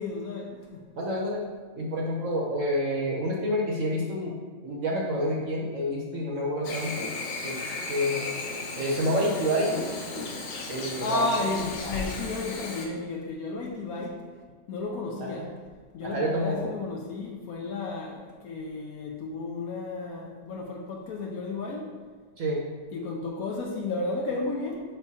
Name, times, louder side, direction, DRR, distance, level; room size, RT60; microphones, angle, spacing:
voice 1, 0.0-0.9 11.0-14.2 14.7-15.5 15.9-21.9 22.9-24.8, left 3 dB, 65° left, 0 dB, 1.0 m, -33 dB
voice 2, 1.0-1.4 1.8-4.4 4.6-7.1 7.4-8.3 8.8-9.7 10.7-11.6 15.2-15.5 16.0-16.7 22.4-22.6, equal, 55° right, -2 dB, 1.0 m, -28 dB
Chirp tweet / Buzz, 6.6-12.9, left 3 dB, 90° left, 1.5 m, -35 dB
5.3 x 4.5 x 4.1 m, 1.5 s
omnidirectional pair, 1.9 m